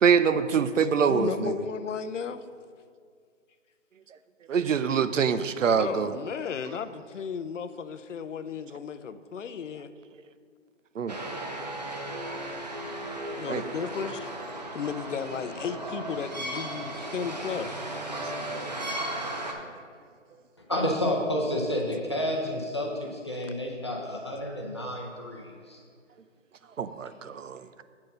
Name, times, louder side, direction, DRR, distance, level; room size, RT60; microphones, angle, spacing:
voice 1, 0.0-1.5 4.5-6.1 11.0-11.2 13.5-13.6 26.8-27.8, right 6 dB, 80° right, 12 dB, 0.6 m, -25 dB
voice 2, 1.1-2.4 5.7-9.9 13.4-14.3 14.7-17.8 23.4-23.5, left 6 dB, 75° left, 11 dB, 0.6 m, -34 dB
sound 1, 11.1-19.5, right 1 dB, 35° right, 0.7 m, -35 dB
voice 3, 20.7-25.8, left 1 dB, 20° left, -2 dB, 0.7 m, -30 dB
8.3 x 4.5 x 6.5 m, 2.1 s
hypercardioid pair, 175°, 37 cm